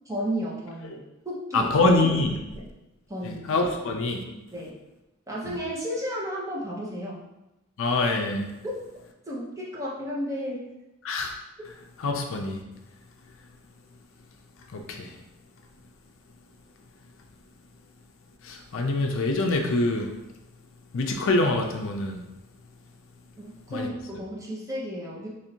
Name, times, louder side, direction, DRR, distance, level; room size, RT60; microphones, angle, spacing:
voice 1, 0.1-1.9 2.6-2.7 3.1-3.5 4.5-4.8 5.3-7.2 9.3-10.7 23.4-25.3, equal, 15° right, -5 dB, 0.9 m, -33 dB
voice 2, 1.5-2.4 3.3-4.2 5.5-5.6 7.8-8.5 11.0-11.3 12.0-12.6 14.7-15.1 18.4-20.1 20.9-22.2 23.7-23.9, left 2 dB, 65° left, 3 dB, 0.5 m, -25 dB
3.1 x 2.6 x 4.3 m, 0.94 s
head